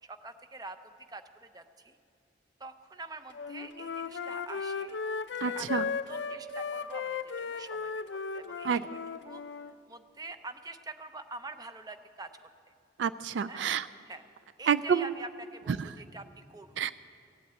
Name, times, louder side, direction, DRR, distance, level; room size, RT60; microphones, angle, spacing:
voice 1, 0.0-1.9 2.6-5.0 5.4-5.8 6.1-8.0 8.3-9.0 9.3-12.3 13.5-13.7 14.1-14.2 14.6-16.8, right 3 dB, 20° right, 9 dB, 0.6 m, -45 dB
Wind instrument woodwind instrument, 3.3-9.7, left 5 dB, 65° left, 0.5 m, -36 dB
voice 2, 5.4-5.9 8.6-8.8 13.0-13.8 14.7-15.1 16.8-16.9, right 7 dB, 75° right, 15 dB, 0.3 m, -28 dB
16.5 x 8.6 x 8.9 m, 2.5 s
head